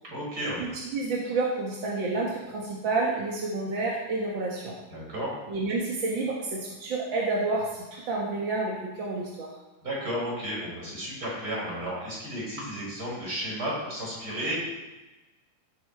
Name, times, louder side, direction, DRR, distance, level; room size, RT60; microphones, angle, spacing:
voice 1, 0.0-0.6 4.9-5.3 9.8-14.6, equal, 25° right, -5 dB, 5.4 m, -33 dB
voice 2, 0.6-4.8 5.5-9.6, right 3 dB, 50° right, -3 dB, 1.6 m, -29 dB
16.0 x 7.6 x 4.7 m, 1.1 s
omnidirectional pair, 3.9 m